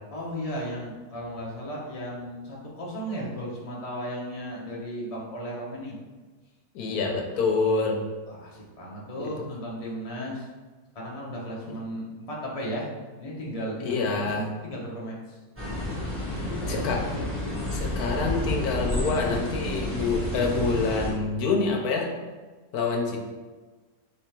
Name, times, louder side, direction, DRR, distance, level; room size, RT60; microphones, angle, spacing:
voice 1, 0.1-6.0 8.3-10.5 10.9-12.9 13.2-15.4 16.1-16.8, equal, 30° left, -4 dB, 0.9 m, -35 dB
voice 2, 6.7-8.0 9.2-9.3 11.7-11.8 13.8-14.5 16.7-17.0 17.7-22.1 22.7-23.2, left 4 dB, 80° left, 1 dB, 1.3 m, -26 dB
sound 1, 15.6-21.1, left 1 dB, 10° right, 1.2 m, -30 dB
3.5 x 3.4 x 4.5 m, 1.3 s
omnidirectional pair, 1.6 m